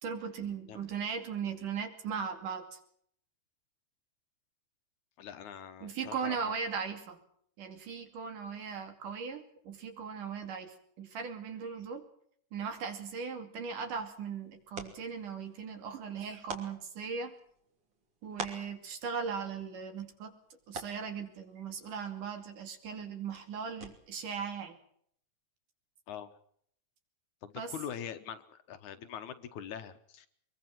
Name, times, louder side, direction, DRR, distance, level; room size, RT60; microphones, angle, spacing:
voice 1, 0.0-2.8 5.8-7.2 7.6-12.0 12.5-17.3 18.2-20.3 20.7-24.8 27.6-27.7, right 6 dB, 65° right, 6 dB, 4.1 m, -38 dB
voice 2, 5.2-6.5 26.1-26.3 27.4-30.3, left 8 dB, 70° left, 9 dB, 2.3 m, -43 dB
sound 1, 13.6-24.3, right 3 dB, 45° right, 3.6 m, -49 dB
23.5 x 22.5 x 6.1 m, 0.66 s
omnidirectional pair, 3.9 m